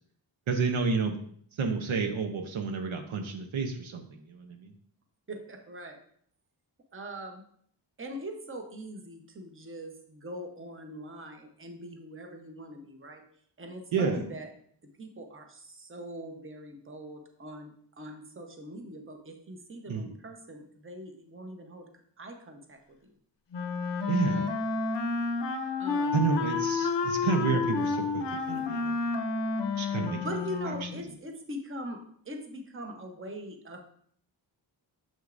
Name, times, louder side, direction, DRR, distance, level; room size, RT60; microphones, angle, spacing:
voice 1, 0.5-1.2 1.6-4.7 13.9-14.2 19.9-20.0 24.1-24.5 26.1-29.0 29.8-30.2, right 5 dB, 75° right, 4 dB, 0.8 m, -30 dB
voice 2, 5.3-6.0 6.9-7.4 8.0-13.2 13.6-14.5 15.0-21.9 22.2-23.1 25.8-26.2 30.2-32.0 32.2-33.8, equal, 25° right, 4 dB, 0.9 m, -42 dB
Wind instrument woodwind instrument, 23.5-31.0, left 4 dB, 65° left, 0.7 m, -30 dB
6.7 x 6.3 x 2.5 m, 0.62 s
wide cardioid pair, 110°, 47 cm